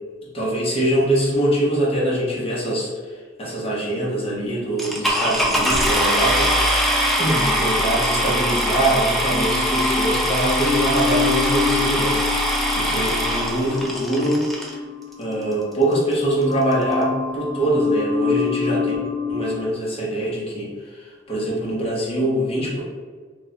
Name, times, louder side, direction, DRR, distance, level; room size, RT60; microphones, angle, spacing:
voice 1, 0.2-6.9 7.2-14.8 15.2-19.0 19.3-22.8, right 1 dB, 30° left, -5 dB, 0.8 m, -23 dB
sound 1, 4.8-14.7 15.5-15.6 16.1-16.2 16.4-16.7, equal, ahead, 0.3 m, -22 dB
In dream, 5.5-8.8 9.3-16.1 16.4-19.6, left 5 dB, 50° right, 0.8 m, -28 dB
2.4 x 2.1 x 3.9 m, 1.5 s
head